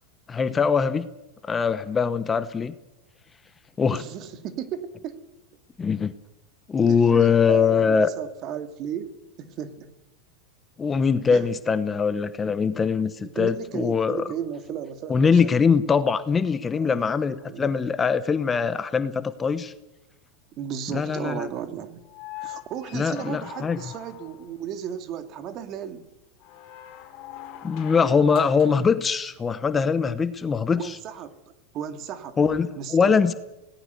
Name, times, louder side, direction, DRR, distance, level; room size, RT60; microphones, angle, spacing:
voice 1, 0.3-1.1 1.5-2.7 3.8-4.0 5.8-6.1 6.7-8.1 10.8-14.2 15.1-19.7 20.9-21.5 22.9-23.8 27.6-31.0 32.4-33.3, left 6 dB, 20° left, 13 dB, 1.0 m, -22 dB
voice 2, 3.9-5.2 6.9-9.1 9.4-9.9 11.3-11.5 13.2-15.6 16.7-17.0 17.4-17.7 20.6-22.0 22.4-26.0 30.8-31.4 31.7-32.4 32.8-33.2, right 9 dB, 40° right, 9 dB, 2.1 m, -34 dB
sound 1, 22.0-24.6 26.4-28.9 30.5-30.6, left 13 dB, 50° left, 4.5 m, -42 dB
25.0 x 18.0 x 6.8 m, 0.97 s
supercardioid pair, 120°, 0 cm